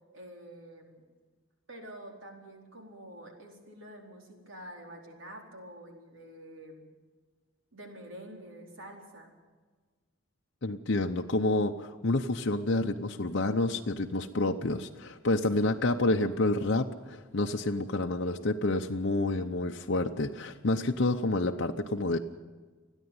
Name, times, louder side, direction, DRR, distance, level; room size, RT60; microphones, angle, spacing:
voice 1, 0.1-1.1 1.7-6.9 7.7-9.3 15.5-15.8, right 1 dB, 70° right, 1 dB, 4.3 m, -47 dB
voice 2, 10.6-22.2, left 2 dB, 55° left, 2 dB, 0.8 m, -29 dB
28.5 x 10.0 x 9.6 m, 1.4 s
head